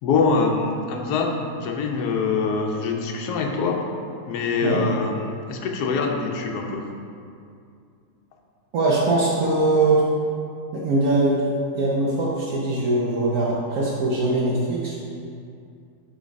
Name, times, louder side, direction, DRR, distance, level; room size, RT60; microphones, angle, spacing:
voice 1, 0.0-3.8 4.3-6.9, left 4 dB, 75° left, 1 dB, 1.2 m, -24 dB
voice 2, 8.7-10.0 10.7-11.5 11.7-15.0, right 2 dB, 65° right, -4 dB, 1.1 m, -21 dB
6.2 x 3.3 x 5.1 m, 2.4 s
omnidirectional pair, 1.7 m